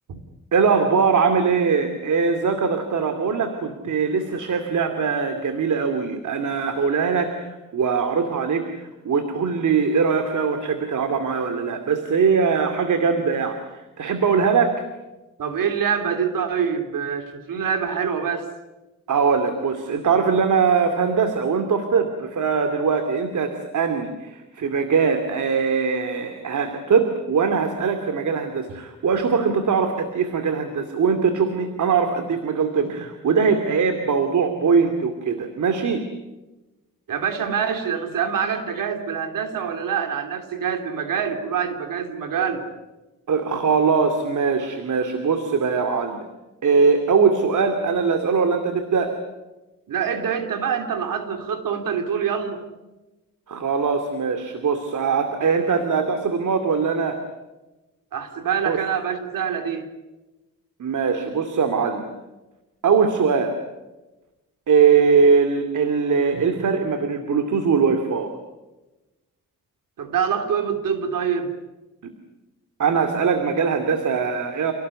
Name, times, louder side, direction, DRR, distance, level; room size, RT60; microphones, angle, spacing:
voice 1, 0.5-14.8 19.1-36.0 43.3-46.2 46.6-49.1 53.5-57.2 58.6-58.8 60.8-62.1 62.8-63.5 64.7-68.3 72.8-74.7, right 5 dB, 65° right, 7 dB, 2.6 m, -21 dB
voice 2, 15.4-18.5 37.1-42.7 49.9-52.6 58.1-59.9 70.0-71.5, right 7 dB, 85° right, 7 dB, 3.3 m, -25 dB
29.5 x 18.5 x 9.7 m, 1.1 s
cardioid pair, 110°, 32 cm